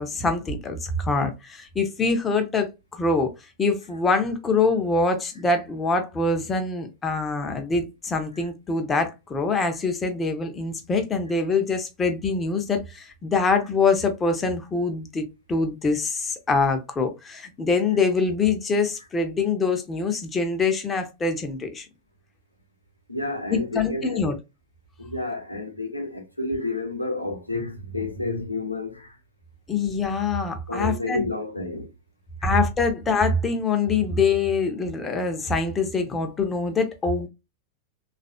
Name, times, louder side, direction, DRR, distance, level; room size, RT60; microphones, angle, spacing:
voice 1, 0.0-3.3 3.6-21.9 23.5-24.3 29.7-31.3 32.4-37.3, left 4 dB, 20° left, 0.7 m, -24 dB
voice 2, 23.1-24.2 25.0-29.2 30.7-31.9 32.4-32.5, left 2 dB, 85° left, 0.8 m, -30 dB
3.3 x 2.5 x 2.4 m
figure-of-eight pair, 90°, 0 cm